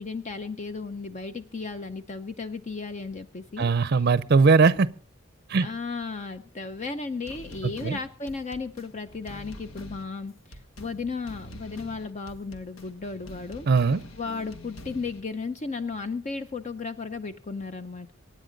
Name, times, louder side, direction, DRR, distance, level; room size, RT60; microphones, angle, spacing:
voice 1, 0.0-3.7 4.0-4.1 5.6-13.7 14.2-18.1, left 4 dB, 35° left, 0.6 m, -35 dB
voice 2, 3.6-4.9 5.5-5.7 7.8-8.0 13.7-14.0, right 4 dB, 50° right, 0.5 m, -20 dB
sound 1, 7.2-15.2, left 1 dB, 75° left, 1.5 m, -45 dB
24.5 x 9.3 x 3.9 m
head